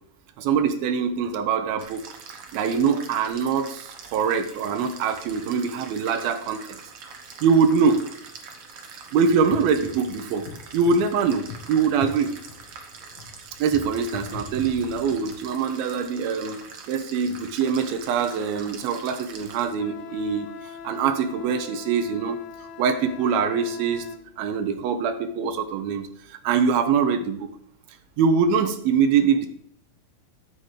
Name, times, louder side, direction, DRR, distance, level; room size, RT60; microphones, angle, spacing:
voice 1, 0.4-2.0 2.5-6.8 7.4-8.0 9.1-10.5 10.7-12.3 13.6-16.6 16.9-20.5 20.8-22.4 22.8-24.1 24.4-27.5 28.2-29.5, right 6 dB, 80° right, 8 dB, 2.7 m, -23 dB
sound 1, 1.8-19.7, right 5 dB, 65° right, 1.5 m, -43 dB
sound 2, 9.2-15.2, left 6 dB, 65° left, 2.5 m, -42 dB
Wind instrument woodwind instrument, 19.8-24.2, left 6 dB, 85° left, 2.8 m, -42 dB
9.9 x 8.2 x 3.3 m, 0.72 s
omnidirectional pair, 4.3 m